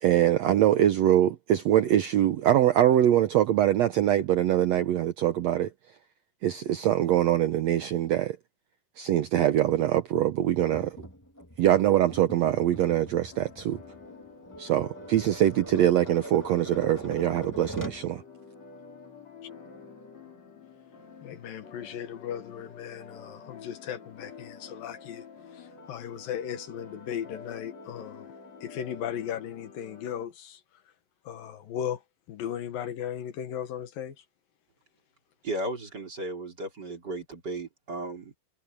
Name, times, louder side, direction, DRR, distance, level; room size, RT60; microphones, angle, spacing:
voice 1, 0.0-5.7 6.4-8.4 9.0-11.0 11.6-13.8 14.6-18.2, right 12 dB, 85° right, 1.5 m, -23 dB
Tap, 10.6-18.1, equal, 5° left, 1.7 m, -42 dB
sound 1, 12.8-30.3, left 5 dB, 45° left, 5.3 m, -49 dB
voice 2, 21.2-25.2 25.5-28.3 28.6-30.6 31.2-32.0 32.3-34.2, left 9 dB, 70° left, 3.1 m, -36 dB
voice 3, 35.4-38.3, right 2 dB, 30° right, 3.7 m, -35 dB
omnidirectional pair, 4.2 m